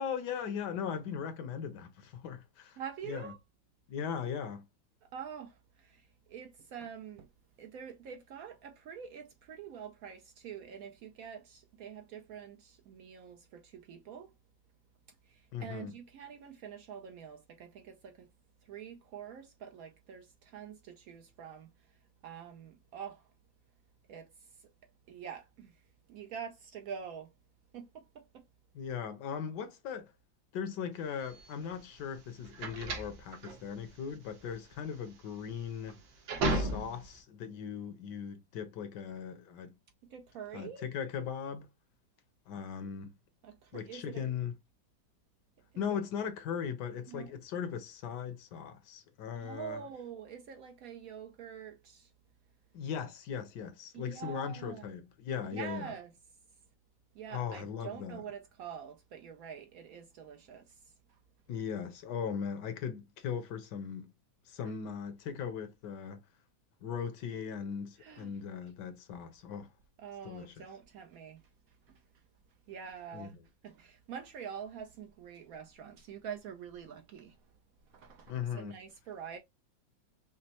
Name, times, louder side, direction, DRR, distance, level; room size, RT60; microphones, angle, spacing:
voice 1, 0.0-2.8 3.1-3.3 3.9-4.7 15.5-15.9 28.7-30.1 30.5-36.0 36.5-39.7 40.5-41.7 42.5-43.1 43.7-44.5 45.7-49.8 52.7-55.9 57.3-58.2 61.5-64.1 64.5-66.2 66.8-69.7 70.2-70.6 73.1-73.3 78.3-78.8, left 7 dB, 70° left, 1.2 m, -38 dB
voice 2, 2.8-3.4 5.0-7.3 7.6-14.3 15.2-18.3 18.6-21.9 22.2-23.3 24.1-24.7 25.1-25.8 26.1-27.3 27.7-28.4 40.1-40.9 43.4-44.2 45.7-45.8 47.1-47.4 49.3-52.1 53.9-54.9 55.5-56.1 57.1-61.2 68.0-68.3 70.0-72.0 72.7-73.4 73.6-77.4 77.9-79.4, right 7 dB, 70° right, 0.8 m, -46 dB
sound 1, 31.2-37.2, right 2 dB, 90° right, 1.7 m, -36 dB
5.1 x 2.0 x 2.8 m
omnidirectional pair, 2.0 m